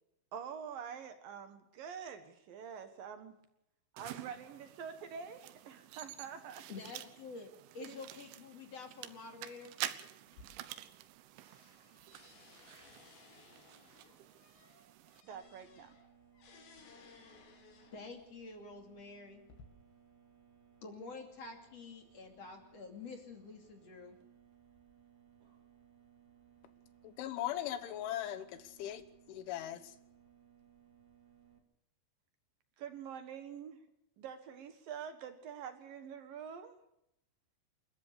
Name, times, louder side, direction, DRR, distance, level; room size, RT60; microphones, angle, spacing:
voice 1, 0.3-3.3 3.9-6.9 7.8-8.0 15.2-16.0 32.8-33.8 34.2-36.7, right 7 dB, 60° right, 9 dB, 2.6 m, -46 dB
sound 1, 4.0-15.2, right 13 dB, 85° right, 3.5 m, -48 dB
voice 2, 6.7-9.7 17.9-19.4 20.8-24.2, left 4 dB, 40° left, 5 dB, 3.0 m, -48 dB
sound 2, 10.3-11.2 11.4-18.3 19.0-19.6, left 4 dB, 65° left, 4.8 m, -60 dB
sound 3, 15.3-31.6, right 8 dB, 45° right, 3.3 m, -64 dB
voice 3, 27.0-29.0 29.3-30.0, left 12 dB, 80° left, 11 dB, 3.6 m, -39 dB
28.5 x 13.5 x 6.8 m, 0.80 s
omnidirectional pair, 5.5 m